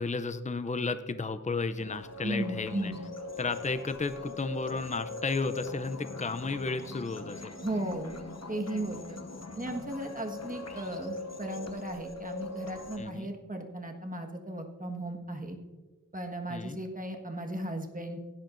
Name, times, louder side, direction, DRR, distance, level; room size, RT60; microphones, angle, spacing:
voice 1, 0.0-2.9 3.4-7.6 13.0-13.3 16.5-16.8, left 3 dB, 20° left, 11 dB, 0.5 m, -33 dB
sound 1, 1.8-13.0, left 3 dB, 50° left, 1.1 m, -41 dB
voice 2, 2.2-3.0 7.6-9.2 9.5-15.6 16.1-18.2, right 1 dB, 25° right, 2 dB, 1.5 m, -36 dB
16.5 x 10.5 x 2.6 m, 1.3 s
wide cardioid pair, 45°, 33 cm